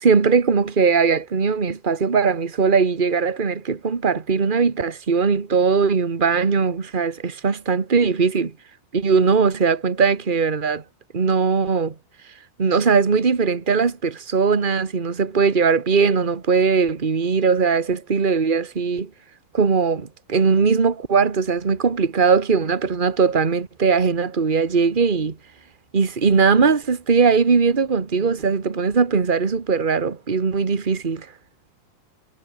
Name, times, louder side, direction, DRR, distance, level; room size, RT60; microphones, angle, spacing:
voice 1, 0.0-8.5 8.9-10.8 11.1-11.9 12.6-19.1 19.5-25.3 25.9-31.3, right 5 dB, 45° right, 0.6 m, -20 dB
omnidirectional pair, 3.5 m